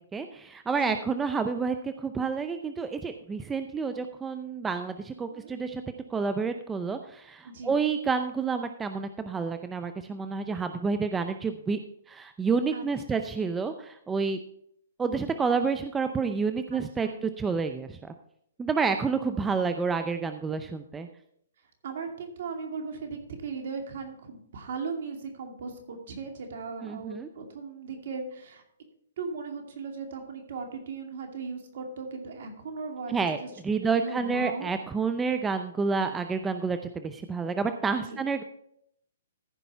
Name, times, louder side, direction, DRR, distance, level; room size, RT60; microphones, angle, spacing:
voice 1, 0.0-5.8 6.1-11.8 12.1-14.4 15.0-18.1 18.6-21.1 26.8-27.3 33.1-33.4 33.6-38.4, right 5 dB, 10° right, 8 dB, 0.5 m, -29 dB
voice 2, 0.7-1.0 5.3-5.6 7.4-7.8 12.7-12.8 13.1-13.2 16.7-17.2 21.8-28.6 29.2-34.7 38.1-38.2, right 4 dB, 60° right, 3 dB, 2.5 m, -38 dB
14.5 x 5.3 x 4.5 m, 0.70 s
hypercardioid pair, 140°, 0 cm